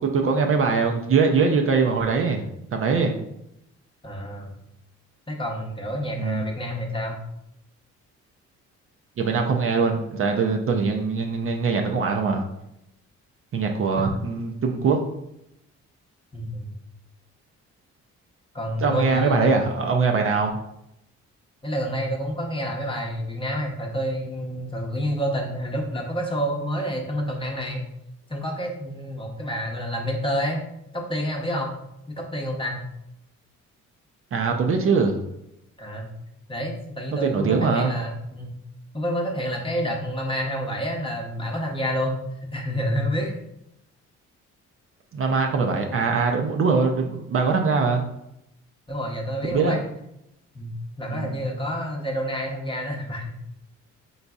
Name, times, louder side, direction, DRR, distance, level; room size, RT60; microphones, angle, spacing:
voice 1, 0.1-2.4 2.7-3.1 6.2-6.4 9.2-12.4 13.5-15.0 18.8-20.6 34.3-35.2 37.2-37.9 45.1-48.0 49.5-49.8 51.1-51.3, right 4 dB, 45° right, 3 dB, 0.5 m, -22 dB
voice 2, 4.0-4.5 5.3-7.2 14.0-14.2 16.3-16.7 18.5-19.5 21.6-27.8 28.3-30.6 30.9-31.8 32.1-32.8 35.8-36.1 36.5-38.5 38.9-42.2 42.5-43.3 45.7-45.8 48.9-49.8 50.5-53.3, equal, 15° left, 0 dB, 0.8 m, -28 dB
4.0 x 3.8 x 2.3 m, 0.81 s
cardioid pair, 90°, 30 cm